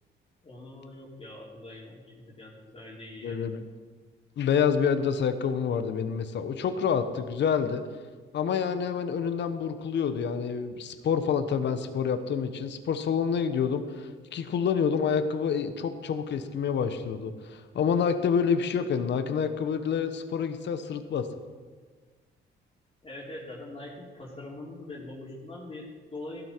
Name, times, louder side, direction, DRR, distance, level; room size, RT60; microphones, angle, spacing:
voice 1, 0.4-3.4 23.0-26.4, left 2 dB, 30° left, -4 dB, 3.4 m, -43 dB
voice 2, 3.2-3.6 4.4-7.8 8.3-21.3, left 7 dB, 65° left, 9 dB, 1.1 m, -28 dB
15.5 x 12.5 x 4.6 m, 1.5 s
cardioid pair, 90°, 20 cm